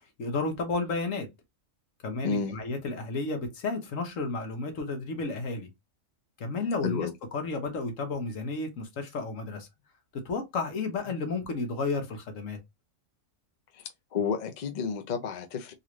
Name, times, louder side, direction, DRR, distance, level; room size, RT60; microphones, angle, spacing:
voice 1, 0.2-1.3 2.0-5.7 6.4-9.7 10.2-12.6, left 3 dB, 75° left, 1.4 m, -32 dB
voice 2, 2.2-2.6 6.8-7.1 13.8-13.9 14.1-15.7, left 6 dB, 45° left, 0.6 m, -31 dB
4.0 x 2.5 x 3.0 m
omnidirectional pair, 1.4 m